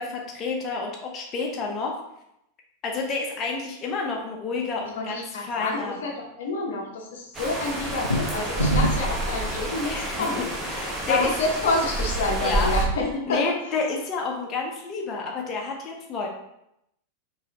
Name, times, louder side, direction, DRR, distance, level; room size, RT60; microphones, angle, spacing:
voice 1, 0.0-1.9 2.8-6.0 9.9-10.3 10.7-11.3 12.4-12.7 13.0-16.3, left 4 dB, 30° left, 0 dB, 0.8 m, -29 dB
voice 2, 5.0-10.5 11.1-13.4, left 2 dB, 60° left, 0 dB, 0.8 m, -28 dB
sound 1, 7.3-12.9, right 2 dB, 20° right, 1.2 m, -29 dB
sound 2, 7.9-9.2, equal, 80° left, 0.4 m, -25 dB
4.9 x 3.2 x 2.9 m, 0.80 s
figure-of-eight pair, 90°, 0 cm